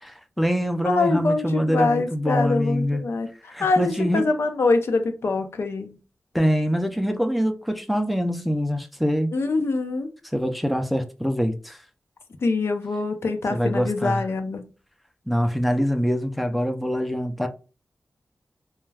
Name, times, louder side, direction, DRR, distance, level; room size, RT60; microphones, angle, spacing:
voice 1, 0.0-3.0 3.5-4.3 6.3-9.3 10.3-11.8 13.5-14.3 15.3-17.5, equal, ahead, 0.4 m, -24 dB
voice 2, 0.8-3.3 3.6-6.0 9.3-10.1 12.4-14.7, left 3 dB, 70° left, 0.5 m, -24 dB
2.3 x 2.2 x 3.2 m
wide cardioid pair, 85°, 4 cm